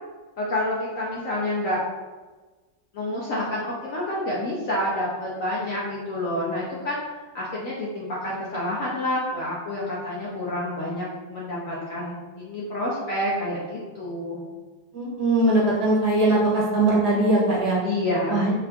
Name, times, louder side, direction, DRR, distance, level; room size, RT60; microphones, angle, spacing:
voice 1, 0.4-1.8 2.9-7.0 7.3-14.4 17.8-18.4, left 1 dB, 60° left, -6 dB, 0.9 m, -28 dB
voice 2, 14.9-17.8 18.3-18.5, right 2 dB, 65° right, -5 dB, 1.5 m, -20 dB
3.7 x 2.4 x 3.4 m, 1.3 s
omnidirectional pair, 2.0 m